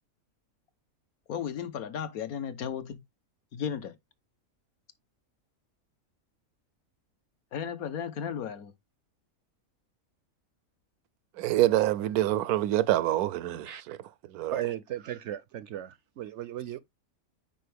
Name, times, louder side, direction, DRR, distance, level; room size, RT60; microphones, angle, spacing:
voice 1, 1.3-3.0 3.5-3.9 7.5-8.7, left 8 dB, 75° left, 1.4 m, -34 dB
voice 2, 11.4-14.0 14.3-14.6, right 14 dB, 85° right, 1.1 m, -26 dB
voice 3, 14.5-16.8, right 12 dB, 65° right, 0.7 m, -36 dB
9.0 x 4.4 x 3.4 m
omnidirectional pair, 1.6 m